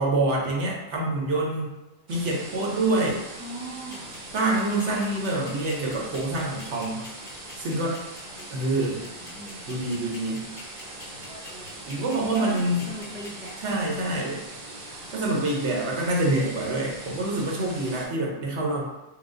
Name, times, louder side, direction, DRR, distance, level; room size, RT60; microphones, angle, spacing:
voice 1, 0.0-1.7 2.1-3.2 4.3-7.1 7.6-7.9 8.5-9.0 9.7-10.5 11.9-12.9 13.6-14.4 15.1-18.8, right 2 dB, 70° right, -2 dB, 1.2 m, -26 dB
sound 1, 2.1-18.1, right 1 dB, 50° right, 1.0 m, -41 dB
voice 2, 3.4-4.2 8.8-9.6 12.3-13.8, right 2 dB, 15° right, -5 dB, 0.5 m, -40 dB
sound 2, 3.9-13.5, left 3 dB, 25° left, 1.6 m, -45 dB
4.8 x 2.2 x 3.7 m, 1.0 s
omnidirectional pair, 1.3 m